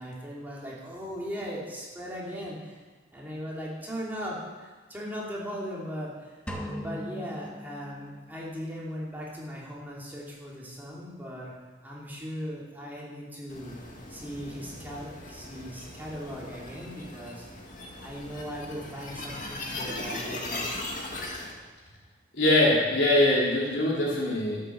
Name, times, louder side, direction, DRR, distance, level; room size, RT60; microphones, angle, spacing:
voice 1, 0.0-2.8 3.1-6.4 6.8-11.5 11.8-13.8 14.1-17.5 18.0-20.7, equal, 10° right, -5 dB, 3.0 m, -38 dB
sound 1, 6.5-8.5, equal, 5° left, 1.5 m, -39 dB
sound 2, 13.5-21.5, left 2 dB, 45° left, 2.2 m, -39 dB
voice 2, 22.3-24.6, left 1 dB, 70° left, -5 dB, 4.2 m, -23 dB
12.0 x 9.5 x 6.9 m, 1.3 s
head